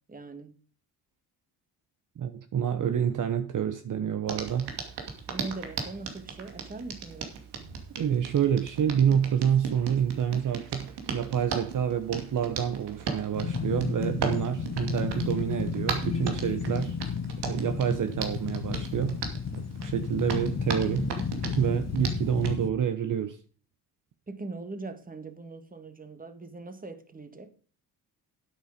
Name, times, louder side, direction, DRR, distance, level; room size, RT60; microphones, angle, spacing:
voice 1, 0.1-0.6 5.3-7.3 24.3-27.5, right 3 dB, 20° right, 1.8 m, -41 dB
voice 2, 2.2-4.7 8.0-17.0 17.4-19.2 19.5-21.1 21.4-23.4, right 8 dB, 50° right, 1.0 m, -28 dB
Hands, 4.3-22.6, right 6 dB, 85° right, 2.5 m, -38 dB
sound 1, 13.3-22.7, left 6 dB, 40° left, 1.3 m, -33 dB
10.0 x 8.8 x 5.1 m
cardioid pair, 90°, 39 cm